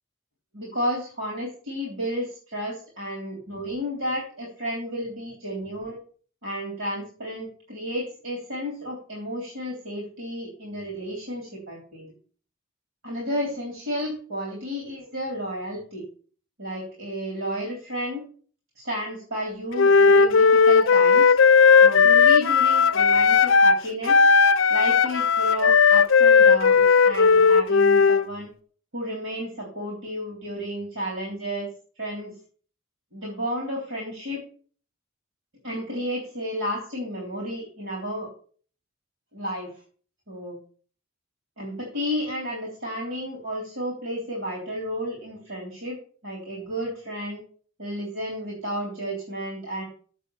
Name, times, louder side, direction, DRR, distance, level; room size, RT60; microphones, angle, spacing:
voice 1, 0.5-6.0 6.4-12.1 13.0-16.0 16.6-18.2 18.8-21.4 21.8-24.2 24.7-28.5 28.9-31.7 32.0-32.3 33.1-34.4 35.6-38.3 39.3-39.7 40.3-40.6 41.6-46.0 46.2-47.4 47.8-49.8, equal, 70° right, -2 dB, 3.4 m, -32 dB
Wind instrument woodwind instrument, 19.8-23.8 24.1-28.3, left 5 dB, 60° left, 0.5 m, -16 dB
7.6 x 7.5 x 7.0 m, 0.44 s
head